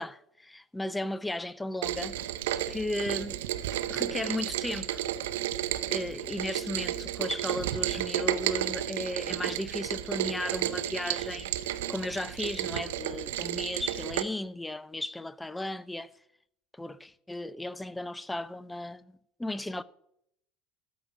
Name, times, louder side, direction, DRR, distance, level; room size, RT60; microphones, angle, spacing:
voice 1, 0.0-2.2 2.7-3.4 3.9-5.0 5.9-16.1 16.7-19.8, left 1 dB, 10° left, 0.6 m, -35 dB
Rain, 1.8-14.2, right 12 dB, 70° right, 0.6 m, -32 dB
13.0 x 5.2 x 8.6 m
figure-of-eight pair, 70°, 0 cm